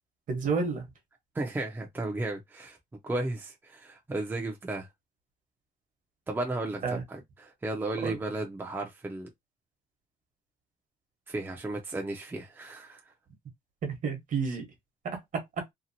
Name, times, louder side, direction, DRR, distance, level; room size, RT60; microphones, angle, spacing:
voice 1, 0.3-0.8 6.8-7.0 8.0-8.1 13.8-14.6 15.0-15.4, right 5 dB, 50° right, 1.2 m, -30 dB
voice 2, 1.3-2.8 3.0-4.9 6.3-9.3 11.3-13.0, right 2 dB, 10° right, 0.6 m, -34 dB
2.9 x 2.4 x 2.7 m
cardioid pair, 110°, 17 cm